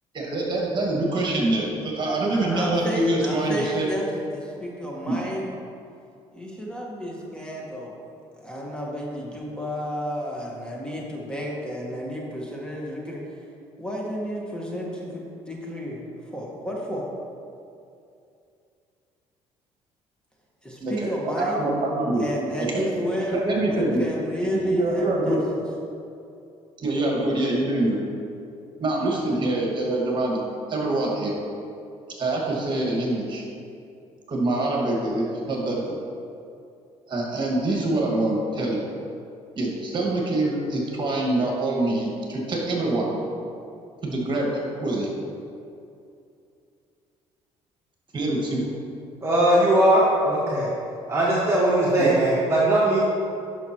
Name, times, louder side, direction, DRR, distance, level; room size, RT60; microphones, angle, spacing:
voice 1, 0.1-3.9 5.0-5.1 20.8-21.1 21.4-22.2 22.7-22.8 23.3-24.0 24.4-25.4 26.8-28.0 28.8-30.4 30.7-31.3 32.2-33.4 34.3-35.9 37.1-38.8 39.5-43.2 44.0-45.1 48.1-48.6 52.0-52.1, right 2 dB, 40° right, -2 dB, 1.8 m, -25 dB
voice 2, 2.3-5.7 6.3-7.9 8.3-13.4 13.8-17.1 20.6-21.7 22.2-25.6, equal, 5° left, -3 dB, 1.4 m, -31 dB
voice 3, 49.2-50.7 51.1-53.0, right 1 dB, 20° right, -7 dB, 1.4 m, -19 dB
10.5 x 6.0 x 3.0 m, 2.5 s
cardioid pair, 90°, 12 cm